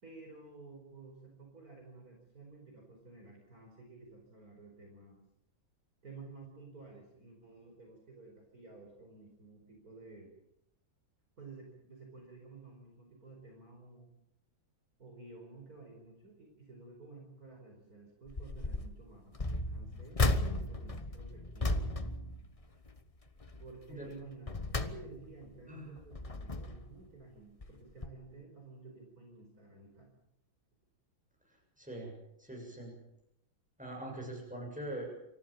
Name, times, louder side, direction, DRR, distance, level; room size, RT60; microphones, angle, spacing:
voice 1, 0.0-5.2 6.0-10.3 11.4-14.1 15.0-21.8 23.6-30.1, right 3 dB, 45° right, 1 dB, 5.1 m, -53 dB
sound 1, 18.3-18.9 19.3-23.0 23.4-23.7 24.2-25.5 26.0-26.9 27.6-27.8 28.0-28.1, left 2 dB, 25° left, 0.9 m, -35 dB
voice 2, 25.7-26.0 31.8-32.1 32.4-33.0 33.8-35.1, right 1 dB, 5° right, 0 dB, 7.3 m, -42 dB
27.0 x 14.0 x 8.8 m, 0.79 s
omnidirectional pair, 2.2 m